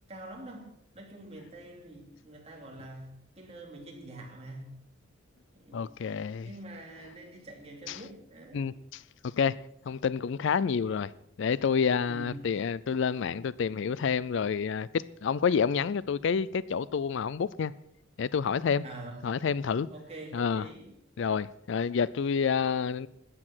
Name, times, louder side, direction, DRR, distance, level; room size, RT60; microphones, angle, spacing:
voice 1, 0.1-0.7 0.9-3.1 3.3-4.6 5.5-5.8 6.4-8.6 12.0-12.4 18.8-19.2 19.9-20.9, right 2 dB, 30° right, 3.0 m, -45 dB
voice 2, 5.7-6.5 7.9-8.0 8.5-9.5 9.9-11.1 11.4-17.7 18.2-18.8 19.2-19.9 20.3-20.7 21.2-23.1, left 6 dB, 60° left, 0.4 m, -29 dB
13.5 x 9.9 x 6.1 m
head